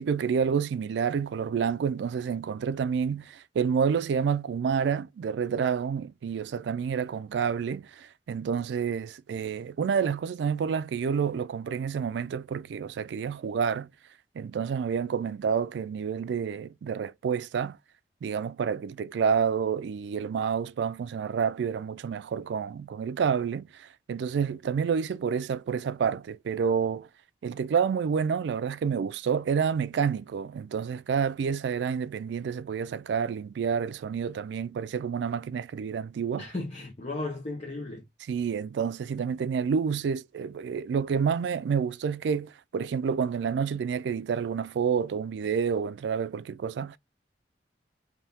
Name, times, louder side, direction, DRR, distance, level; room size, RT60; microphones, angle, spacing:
voice 1, 0.0-13.9 14.4-17.8 18.2-27.1 27.4-36.5 38.3-47.0, right 6 dB, 80° right, 0.3 m, -29 dB
voice 2, 36.4-38.0, left 2 dB, 40° left, 0.8 m, -35 dB
3.5 x 2.7 x 2.7 m
head